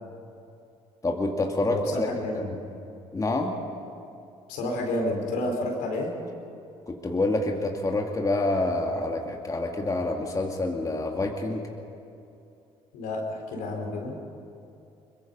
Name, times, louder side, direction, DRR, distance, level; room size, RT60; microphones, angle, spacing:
voice 1, 1.0-2.1 2.3-2.4 3.1-3.5 6.9-11.6, left 2 dB, 25° left, 1 dB, 2.3 m, -27 dB
voice 2, 1.7-2.6 4.5-6.1 12.9-14.2, left 1 dB, 75° left, 1 dB, 4.2 m, -30 dB
22.5 x 21.0 x 5.5 m, 2.6 s
hypercardioid pair, 65°, 14 cm